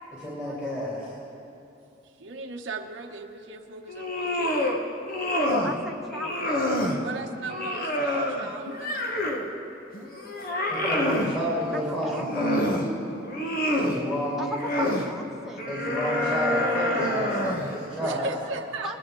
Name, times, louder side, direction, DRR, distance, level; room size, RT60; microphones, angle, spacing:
voice 1, 0.2-1.1 10.6-12.9 13.8-14.4 15.7-18.3, equal, 15° left, -8 dB, 2.9 m, -30 dB
voice 2, 2.0-4.9 7.0-8.9 18.0-18.9, right 3 dB, 85° right, 2 dB, 1.0 m, -37 dB
sound 1, 3.9-4.8 5.1-5.8 6.1-7.0 7.5-9.5 9.9-11.3 12.0-12.9 13.2-14.0 14.5-15.1 15.6-17.7, left 1 dB, 50° left, 1.1 m, -27 dB
voice 3, 5.4-6.7 11.7-12.6 14.4-15.7 18.8-19.0, right 1 dB, ahead, -1 dB, 0.4 m, -37 dB
21.0 x 10.5 x 3.8 m, 2.7 s
head